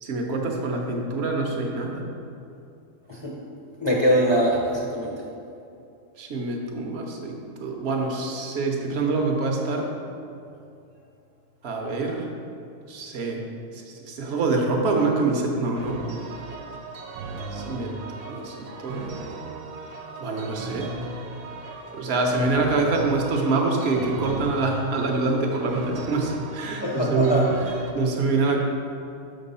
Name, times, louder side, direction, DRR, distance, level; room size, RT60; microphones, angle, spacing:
voice 1, 0.0-2.0 6.2-9.9 11.6-12.3 12.9-13.4 13.7-16.0 17.5-17.9 18.3-19.1 20.2-20.9 21.9-27.4 27.9-28.6, right 3 dB, 50° right, 1 dB, 0.9 m, -25 dB
voice 2, 3.8-5.2 11.7-11.8 25.6-25.7 26.8-27.5, equal, 30° left, -5 dB, 0.5 m, -23 dB
sound 1, 15.8-27.9, right 4 dB, 90° right, 1.2 m, -37 dB
6.4 x 3.7 x 5.4 m, 2.6 s
omnidirectional pair, 1.6 m